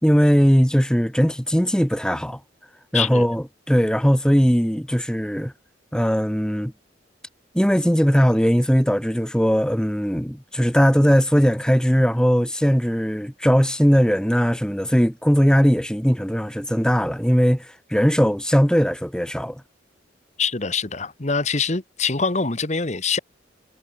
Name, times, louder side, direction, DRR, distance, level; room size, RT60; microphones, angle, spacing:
voice 1, 0.0-2.4 2.9-5.5 5.9-6.7 7.5-19.6, equal, 5° left, 2.8 m, -19 dB
voice 2, 2.9-3.3 20.4-23.2, left 5 dB, 40° left, 1.3 m, -24 dB
head